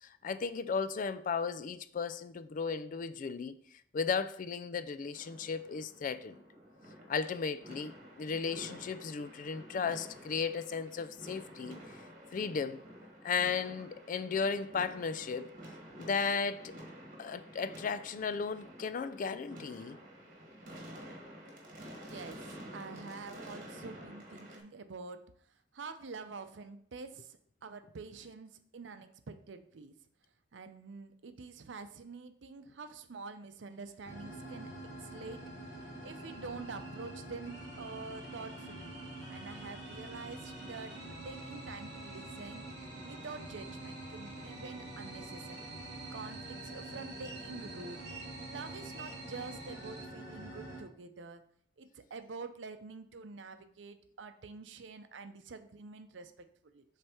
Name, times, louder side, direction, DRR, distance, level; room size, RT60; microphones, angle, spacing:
voice 1, 0.0-3.6 3.9-6.4 7.1-7.9 8.2-11.8 12.3-12.8 13.2-15.5 16.0-16.7 17.2-20.0, left 5 dB, 45° left, 0.3 m, -35 dB
sound 1, 5.1-24.6, equal, 45° right, 1.5 m, -50 dB
voice 2, 21.9-25.2 25.7-29.9 30.5-39.0 39.3-42.7 43.0-45.7 46.1-48.0 48.5-51.4 51.8-56.5 56.7-56.8, right 4 dB, 85° right, 0.6 m, -47 dB
sound 2, 33.7-50.1, right 5 dB, 60° right, 0.9 m, -54 dB
sound 3, 34.0-50.8, right 1 dB, 25° left, 2.6 m, -46 dB
7.7 x 3.3 x 4.4 m
head